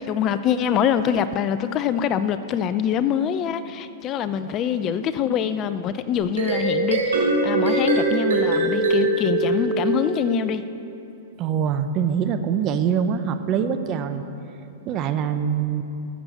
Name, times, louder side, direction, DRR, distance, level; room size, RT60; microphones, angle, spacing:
voice 1, 0.1-10.6, left 8 dB, 35° left, 12 dB, 0.5 m, -24 dB
sound 1, 6.2-10.5, right 3 dB, 90° right, 3.6 m, -22 dB
voice 2, 11.4-14.2 14.9-15.8, right 7 dB, 35° right, 9 dB, 0.9 m, -24 dB
14.5 x 7.0 x 7.2 m, 2.7 s
hypercardioid pair, 125°, 0 cm